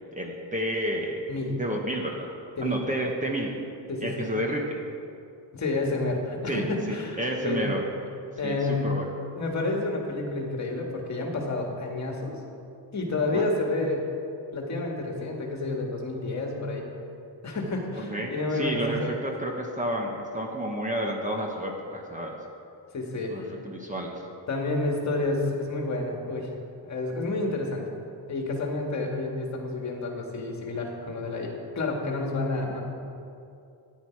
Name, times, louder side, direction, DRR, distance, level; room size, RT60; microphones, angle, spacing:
voice 1, 0.1-1.2 1.6-2.3 2.6-3.5 4.0-4.8 6.5-6.6 7.2-8.1 8.4-9.1 13.3-13.5 18.0-22.4 23.3-24.1, right 1 dB, 20° right, 0 dB, 1.0 m, -30 dB
voice 2, 1.3-1.6 2.6-2.8 3.9-4.3 5.5-7.6 8.4-8.9 9.3-12.3 12.9-14.0 14.5-16.9 17.4-19.1 22.9-23.6 24.5-26.5 26.8-27.8 28.3-32.8, left 2 dB, 40° left, 0 dB, 1.9 m, -29 dB
14.0 x 10.5 x 4.6 m, 2.5 s
wide cardioid pair, 170°, 43 cm